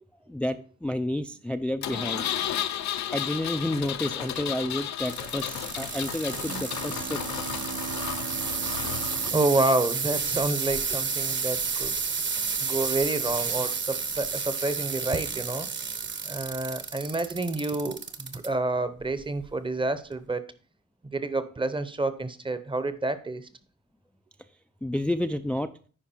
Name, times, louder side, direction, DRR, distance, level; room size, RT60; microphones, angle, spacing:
voice 1, 0.3-2.3 3.1-7.2 24.8-25.7, left 1 dB, 5° left, 10 dB, 0.4 m, -30 dB
Engine, 1.8-9.3, left 10 dB, 70° left, 0.7 m, -33 dB
sound 1, 5.0-18.5 19.0-19.5 20.1-20.2, right 5 dB, 40° right, 1.1 m, -31 dB
sound 2, 6.3-10.4, right 10 dB, 75° right, 1.1 m, -41 dB
voice 2, 9.3-12.0 12.6-15.7 16.2-20.5 21.1-23.5, right 2 dB, 15° right, 13 dB, 0.8 m, -29 dB
10.0 x 4.8 x 4.4 m, 0.41 s
cardioid pair, 90°, 30 cm